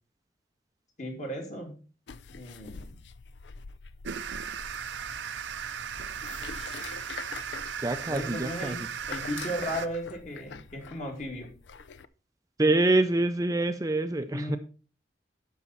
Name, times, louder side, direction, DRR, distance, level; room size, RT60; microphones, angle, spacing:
voice 1, 1.0-1.8 2.3-3.0 8.0-11.5 14.3-14.6, equal, 45° left, 1 dB, 2.5 m, -36 dB
sound 1, 2.1-12.1, left 5 dB, 80° left, 0.5 m, -45 dB
sound 2, 4.0-9.9, right 7 dB, 90° right, 0.6 m, -37 dB
voice 2, 7.8-8.7 12.6-14.6, right 2 dB, 20° right, 8 dB, 0.5 m, -25 dB
12.0 x 5.6 x 4.2 m, 0.37 s
head